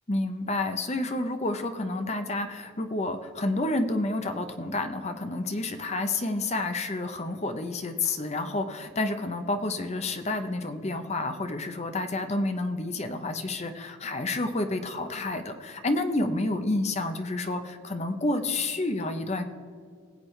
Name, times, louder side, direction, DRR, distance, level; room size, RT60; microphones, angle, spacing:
voice 1, 0.1-19.4, left 2 dB, 30° left, 7 dB, 0.7 m, -29 dB
19.5 x 8.2 x 3.2 m, 2.3 s
head